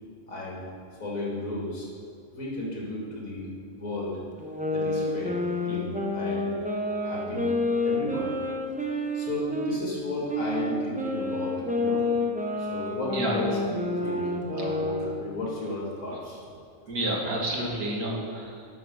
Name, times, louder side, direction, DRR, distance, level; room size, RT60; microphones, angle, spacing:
voice 1, 0.3-0.6 1.0-1.9 2.3-4.2 4.7-7.5 7.8-8.3 8.7-12.0 12.6-16.4, left 1 dB, 65° left, -4 dB, 2.6 m, -34 dB
sound 1, 4.4-9.8 10.3-15.2, left 2 dB, 10° right, 0.4 m, -29 dB
voice 2, 16.9-18.7, right 1 dB, 85° right, -1 dB, 1.9 m, -30 dB
11.5 x 4.8 x 5.4 m, 2.4 s
omnidirectional pair, 1.5 m